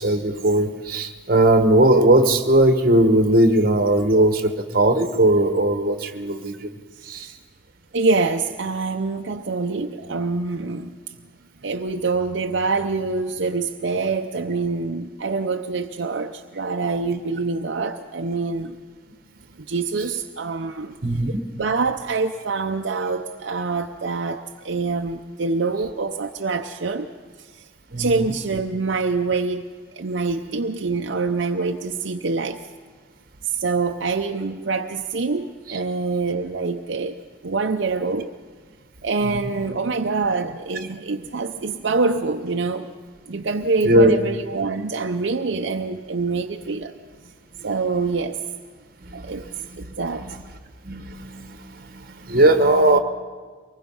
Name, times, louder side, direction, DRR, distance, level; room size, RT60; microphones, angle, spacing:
voice 1, 0.0-6.7 7.1-7.3 21.0-21.4 27.9-28.3 39.2-39.4 43.8-44.2 49.0-49.3 49.6-49.9 50.2-50.4 50.8-53.0, right 1 dB, 50° right, 7 dB, 1.3 m, -19 dB
voice 2, 7.0-7.3 7.9-11.2 11.6-18.8 19.6-21.0 21.6-27.1 27.4-27.7 28.0-32.6 33.4-37.2 37.4-38.3 39.0-42.9 43.3-47.0 47.6-48.4 49.1-49.5 49.8-50.3, right 3 dB, 70° right, 4 dB, 0.7 m, -25 dB
24.0 x 20.5 x 5.6 m, 1.5 s
head